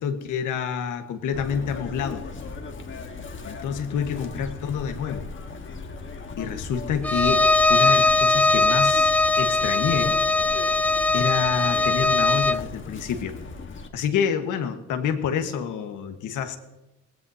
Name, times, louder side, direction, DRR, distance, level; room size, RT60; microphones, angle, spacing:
voice 1, 0.0-2.3 3.4-5.3 6.4-10.2 11.1-13.4 13.9-16.6, left 7 dB, 85° left, 7 dB, 1.4 m, -28 dB
Chirp tweet, 1.3-13.9, left 4 dB, 40° left, 1.4 m, -38 dB
Bowed string instrument, 7.0-12.7, left 3 dB, 5° left, 0.3 m, -20 dB
18.5 x 16.0 x 2.8 m, 0.99 s
cardioid pair, 90°, 30 cm